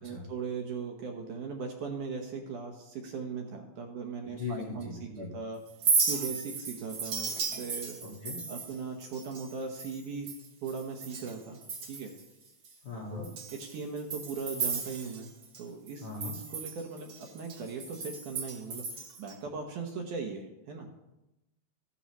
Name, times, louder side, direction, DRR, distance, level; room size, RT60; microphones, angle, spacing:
voice 1, 0.0-5.6 6.0-8.0 8.5-10.3 10.6-11.6 11.9-12.1 13.1-15.3 15.6-18.8 19.2-20.9, right 5 dB, 70° right, 2 dB, 2.1 m, -39 dB
voice 2, 4.3-5.3 8.0-8.4 12.8-13.2 16.0-16.3, left 4 dB, 90° left, -4 dB, 0.8 m, -39 dB
Chink clink, 5.7-11.3 11.6-12.2 12.6-12.7 13.2-15.6 15.9-19.3, right 5 dB, 50° right, 1.9 m, -34 dB
15.0 x 12.5 x 3.1 m, 0.96 s
omnidirectional pair, 4.7 m